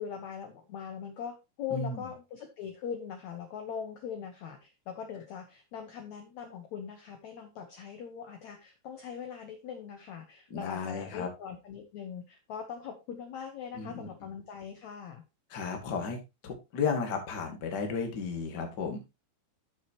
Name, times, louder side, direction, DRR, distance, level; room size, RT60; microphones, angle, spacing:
voice 1, 0.0-15.2, left 7 dB, 65° left, 4 dB, 1.9 m, -41 dB
voice 2, 10.5-11.3 13.7-14.1 15.5-16.2 16.4-19.0, left 5 dB, 35° left, 4 dB, 1.8 m, -33 dB
13.0 x 6.5 x 2.9 m, 0.25 s
omnidirectional pair, 4.6 m